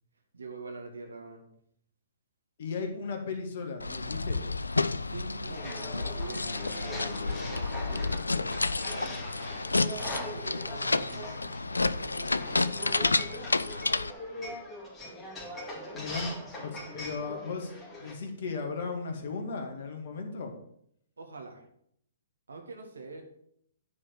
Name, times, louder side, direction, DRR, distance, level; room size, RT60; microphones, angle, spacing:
voice 1, 0.3-1.4 5.0-13.1 16.6-16.7 21.2-21.6 22.5-23.2, right 4 dB, 80° right, 3 dB, 2.1 m, -46 dB
voice 2, 2.6-4.4 15.9-16.3 16.6-20.5, left 4 dB, 55° left, 3 dB, 2.1 m, -36 dB
sound 1, 3.8-14.1, left 3 dB, 85° left, 0.4 m, -30 dB
sound 2, 5.5-18.1, left 1 dB, 20° left, 2.6 m, -42 dB
9.7 x 5.0 x 6.8 m, 0.69 s
figure-of-eight pair, 120°, 0 cm